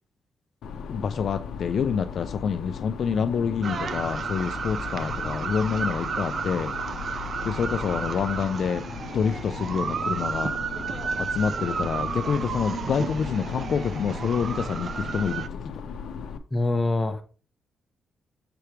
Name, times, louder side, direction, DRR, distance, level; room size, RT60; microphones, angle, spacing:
sound 1, 0.6-16.4, left 6 dB, 90° left, 0.7 m, -37 dB
voice 1, 0.9-6.7 7.4-8.8 9.1-10.5 11.2-15.7, left 6 dB, 55° left, 0.4 m, -27 dB
sound 2, 3.6-15.5, right 6 dB, 45° right, 0.4 m, -32 dB
voice 2, 16.5-17.2, left 2 dB, 15° left, 0.8 m, -24 dB
6.8 x 3.3 x 4.5 m
cardioid pair, 140°, 0 cm